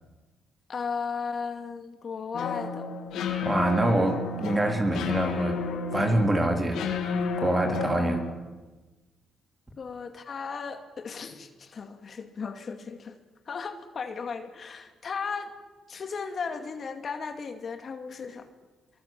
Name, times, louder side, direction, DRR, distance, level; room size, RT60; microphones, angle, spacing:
voice 1, 0.7-2.9 9.8-13.1 13.5-15.5 15.9-18.5, left 5 dB, 45° left, 6 dB, 2.3 m, -35 dB
sound 1, 2.3-8.4, left 4 dB, 85° left, 3.2 m, -31 dB
voice 2, 3.4-5.6 5.9-7.2 7.4-8.2, right 1 dB, 20° right, 3 dB, 3.9 m, -25 dB
24.0 x 23.0 x 7.7 m, 1.3 s
cardioid pair, 90°, 0 cm